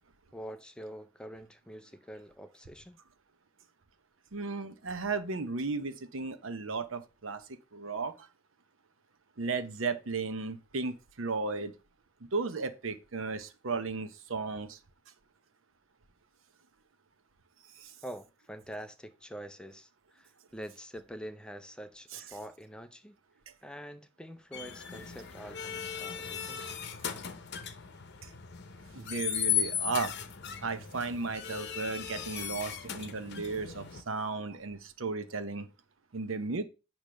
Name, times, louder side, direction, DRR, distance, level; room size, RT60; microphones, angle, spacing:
voice 1, 0.3-3.0 18.0-23.2 23.6-26.8, equal, 5° left, 0.5 m, -45 dB
voice 2, 4.3-7.4 7.7-8.3 9.4-11.7 12.3-14.8 17.7-17.9 22.1-22.2 28.2-28.3 28.9-30.1 30.6-35.7 36.1-36.6, right 4 dB, 70° right, 0.8 m, -35 dB
sound 1, 24.5-34.0, left 9 dB, 60° left, 0.8 m, -37 dB
8.5 x 3.1 x 6.2 m
head